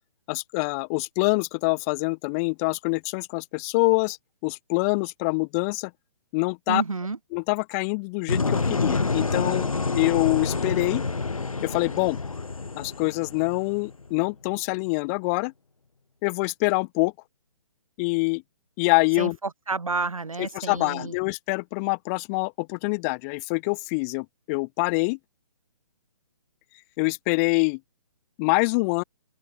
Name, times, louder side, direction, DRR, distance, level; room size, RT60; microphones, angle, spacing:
voice 1, 0.3-4.2 4.4-5.9 6.3-6.8 7.3-9.7 10.0-11.0 11.6-12.2 12.8-15.5 16.2-17.1 18.0-18.4 18.8-19.4 20.5-25.2 27.0-27.8 28.4-29.0, left 31 dB, 30° left, 2.3 m, -25 dB
voice 2, 6.7-7.2 19.2-21.1, right 4 dB, 85° right, 7.9 m, -30 dB
sound 1, 8.3-14.2, left 4 dB, 85° left, 3.1 m, -28 dB
open air
hypercardioid pair, 140°, 17 cm